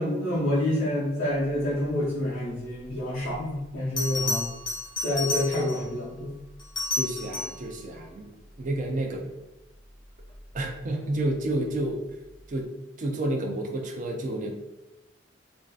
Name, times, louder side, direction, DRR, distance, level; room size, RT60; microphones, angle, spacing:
voice 1, 0.0-4.5 5.0-6.3, left 1 dB, 75° left, -9 dB, 0.7 m, -27 dB
Bell, 4.0-5.9 6.6-7.7 10.3-10.6, left 2 dB, 25° left, 0.6 m, -31 dB
voice 2, 7.0-8.3 8.6-9.3 10.5-12.0 12.5-14.5, right 1 dB, 45° right, 2 dB, 0.4 m, -30 dB
2.5 x 2.4 x 2.3 m, 0.99 s
head